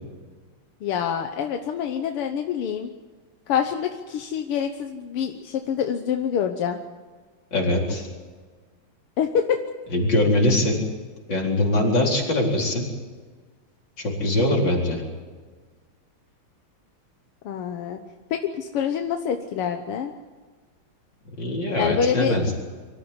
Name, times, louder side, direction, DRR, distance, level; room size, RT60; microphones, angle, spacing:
voice 1, 0.8-2.9 3.5-6.8 9.2-9.6 17.5-18.0 18.3-20.1 21.8-22.4, left 8 dB, 85° left, 5 dB, 2.0 m, -26 dB
voice 2, 7.5-8.1 9.9-10.8 11.3-12.8 14.0-15.0 21.4-22.6, left 1 dB, 55° left, -1 dB, 4.9 m, -22 dB
24.0 x 14.5 x 9.7 m, 1.4 s
omnidirectional pair, 2.4 m